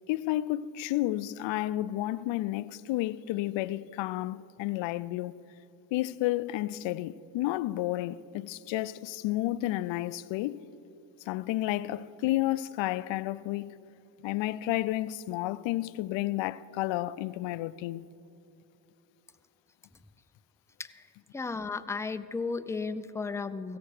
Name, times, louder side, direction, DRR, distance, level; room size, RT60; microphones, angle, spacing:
voice 1, 0.1-5.4 5.9-10.6 11.2-13.7 14.2-18.1, left 16 dB, 70° left, 0.5 m, -31 dB
voice 2, 21.3-23.8, left 4 dB, 5° left, 0.4 m, -34 dB
16.0 x 6.9 x 6.6 m
supercardioid pair, 65°, 48 cm